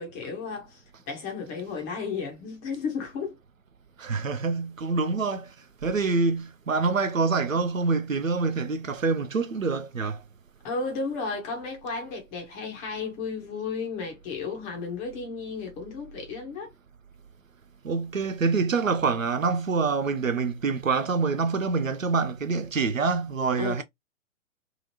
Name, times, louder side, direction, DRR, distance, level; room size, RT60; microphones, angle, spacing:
voice 1, 0.0-3.4 10.6-16.7 23.6-23.8, left 4 dB, 10° left, 0.4 m, -33 dB
voice 2, 4.0-10.2 17.8-23.8, right 4 dB, 85° right, 0.6 m, -26 dB
2.9 x 2.5 x 2.8 m
figure-of-eight pair, 115°, 38 cm